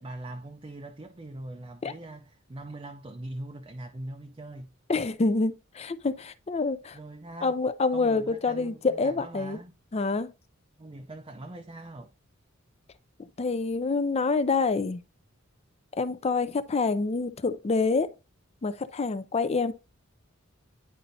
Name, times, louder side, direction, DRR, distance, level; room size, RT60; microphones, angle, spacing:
voice 1, 0.0-4.7 6.9-7.6 7.9-9.7 10.8-12.1, right 1 dB, 25° right, 0.5 m, -42 dB
voice 2, 4.9-7.0 7.4-9.6 9.9-10.3 13.4-15.0 16.0-18.1 18.6-19.7, left 4 dB, 30° left, 0.5 m, -27 dB
10.0 x 4.1 x 2.7 m
head